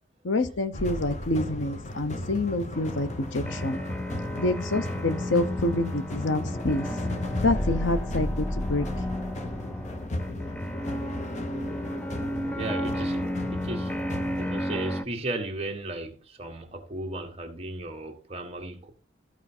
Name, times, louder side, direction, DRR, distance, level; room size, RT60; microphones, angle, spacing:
voice 1, 0.2-3.8 4.4-6.9 7.4-8.9, left 2 dB, 85° left, 0.9 m, -27 dB
sound 1, 0.7-14.6, left 1 dB, 40° left, 0.8 m, -34 dB
sound 2, 2.7-15.0, equal, 5° left, 0.4 m, -34 dB
voice 2, 12.5-13.2 13.5-13.9 14.3-18.9, right 2 dB, 30° right, 1.5 m, -35 dB
13.5 x 4.6 x 4.4 m
head